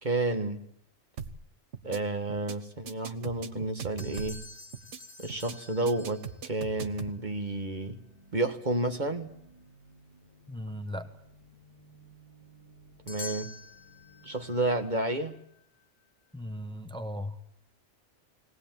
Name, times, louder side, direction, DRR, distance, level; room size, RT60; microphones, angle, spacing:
voice 1, 0.0-0.6 1.8-4.4 5.2-8.0 8.3-9.3 13.1-13.5 14.2-15.4, right 2 dB, 40° right, 7 dB, 1.7 m, -31 dB
sound 1, 1.2-1.5 1.7-2.0 2.3-2.6 2.9-4.5 4.7-5.0 5.3-5.6 5.9-7.2, right 6 dB, 80° right, 1.5 m, -40 dB
sound 2, 4.0-6.6 13.1-15.8, left 3 dB, 60° left, 2.2 m, -47 dB
sound 3, 7.3-14.8, right 1 dB, 25° right, 4.8 m, -57 dB
voice 2, 10.5-11.1 16.3-17.4, equal, 5° left, 8 dB, 1.3 m, -37 dB
20.0 x 19.0 x 9.0 m, 0.70 s
omnidirectional pair, 1.2 m